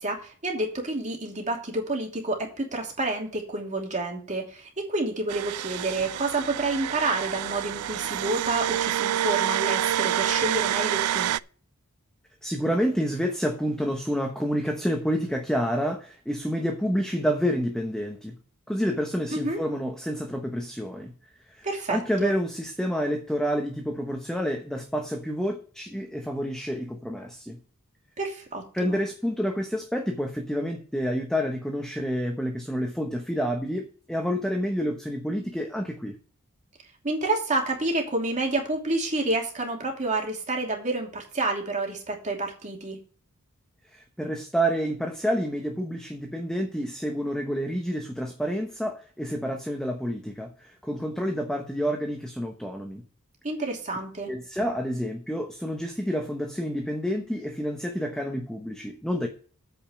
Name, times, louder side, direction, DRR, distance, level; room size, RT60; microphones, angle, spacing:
voice 1, 0.0-11.3 19.3-19.6 21.6-22.3 28.2-29.0 37.0-43.0 53.4-54.3, right 2 dB, 35° right, 2.8 m, -29 dB
sound 1, 5.3-11.4, right 11 dB, 85° right, 0.3 m, -27 dB
voice 2, 12.4-18.4 18.7-21.1 21.6-27.6 28.7-36.1 43.9-53.0 54.3-59.3, equal, 5° left, 1.0 m, -29 dB
8.8 x 5.3 x 7.0 m
head